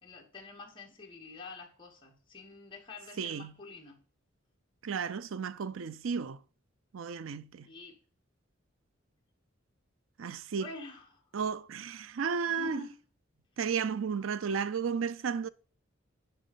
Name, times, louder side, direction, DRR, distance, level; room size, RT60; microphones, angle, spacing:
voice 1, 0.0-4.0 7.6-8.0 10.6-11.2 12.5-12.9, left 2 dB, 25° left, 2.2 m, -47 dB
voice 2, 3.2-3.5 4.8-6.4 6.9-7.7 10.2-10.7 11.3-12.9 13.6-15.5, right 6 dB, 80° right, 0.5 m, -33 dB
10.5 x 4.2 x 5.6 m
head